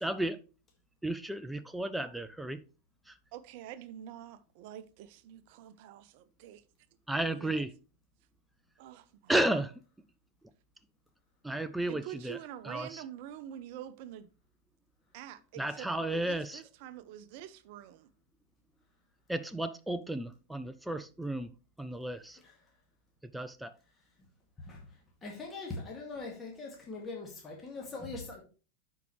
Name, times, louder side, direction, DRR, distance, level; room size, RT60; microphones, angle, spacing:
voice 1, 0.0-0.4 1.0-2.6 7.1-7.7 9.3-9.7 11.4-12.4 12.7-12.9 15.6-16.6 19.3-21.5 21.8-22.4 23.3-23.7, right 1 dB, 5° right, 0.4 m, -33 dB
voice 2, 3.3-6.6 7.2-7.7 8.8-9.6 11.9-14.3 15.1-18.1, right 11 dB, 45° right, 0.6 m, -46 dB
voice 3, 24.6-28.4, left 3 dB, 15° left, 2.0 m, -42 dB
11.5 x 4.7 x 3.2 m
figure-of-eight pair, 90°, 0 cm